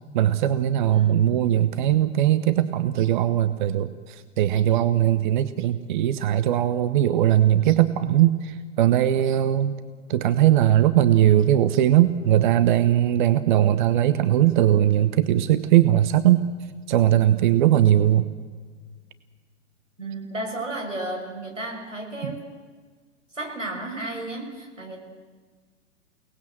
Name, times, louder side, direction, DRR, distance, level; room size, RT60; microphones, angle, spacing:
voice 1, 0.1-9.7 10.1-16.4 16.9-18.3 22.2-22.4, right 12 dB, 40° right, 12 dB, 1.0 m, -20 dB
voice 2, 0.9-1.4 20.0-22.5 23.3-25.0, right 2 dB, 85° right, 1 dB, 6.2 m, -33 dB
29.0 x 19.0 x 7.7 m, 1.5 s
figure-of-eight pair, 110°, 37 cm